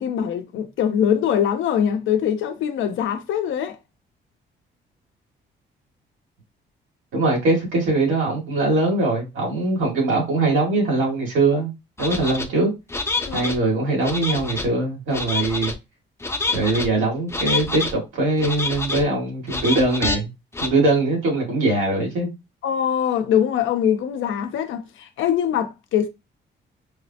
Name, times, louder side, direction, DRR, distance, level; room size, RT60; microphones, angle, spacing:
voice 1, 0.0-3.8 13.2-13.5 22.6-26.1, left 9 dB, 80° left, 0.7 m, -23 dB
voice 2, 7.1-11.7 12.0-12.7 13.3-15.7 16.5-20.3 20.6-22.3, right 2 dB, 85° right, 2.3 m, -21 dB
sound 1, 12.0-12.5 12.9-13.6 14.0-14.7 15.1-15.7 16.2-16.9 17.3-17.9 18.4-19.0 19.5-20.2 20.5-20.7, left 3 dB, 15° left, 0.5 m, -27 dB
4.9 x 2.0 x 2.8 m
cardioid pair, 90°, 20 cm